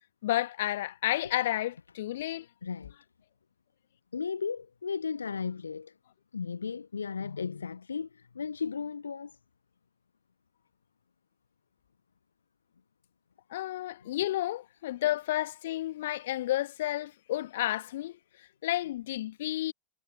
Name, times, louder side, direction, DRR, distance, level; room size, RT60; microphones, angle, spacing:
voice 1, 0.2-2.5 13.5-18.2 18.6-19.7, left 14 dB, 55° left, 1.7 m, -31 dB
voice 2, 2.6-2.9 4.1-5.9 6.3-9.4, left 5 dB, 75° left, 0.7 m, -35 dB
figure-of-eight pair, 90°, 0 cm